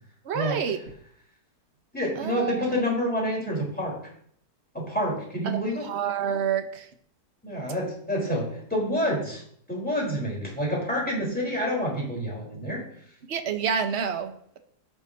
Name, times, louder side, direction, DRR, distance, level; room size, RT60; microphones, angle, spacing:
voice 1, 0.2-0.8 2.2-2.8 5.4-6.9 13.3-14.6, right 7 dB, 50° right, 7 dB, 1.0 m, -29 dB
voice 2, 1.9-4.0 4.7-5.9 7.4-9.4 9.7-12.8, equal, 5° left, -4 dB, 3.8 m, -28 dB
16.5 x 6.0 x 2.8 m, 0.65 s
omnidirectional pair, 1.8 m